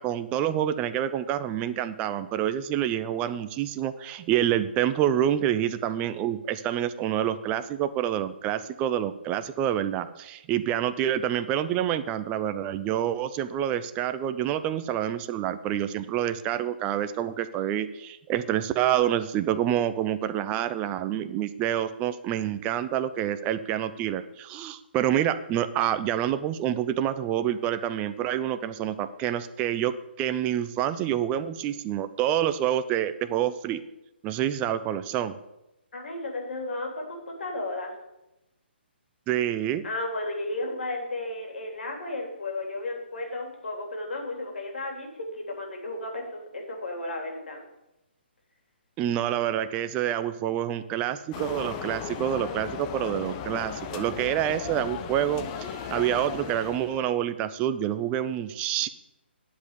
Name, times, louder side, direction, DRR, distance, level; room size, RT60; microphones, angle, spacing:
voice 1, 0.0-33.8 34.2-35.4 39.3-39.8 49.0-58.9, right 11 dB, 20° right, 11 dB, 0.6 m, -27 dB
voice 2, 35.9-38.0 39.8-47.6, left 2 dB, 70° left, 2 dB, 3.2 m, -34 dB
sound 1, 51.3-57.1, left 8 dB, 30° left, 0.8 m, -36 dB
9.9 x 5.3 x 8.3 m, 0.93 s
figure-of-eight pair, 140°, 6 cm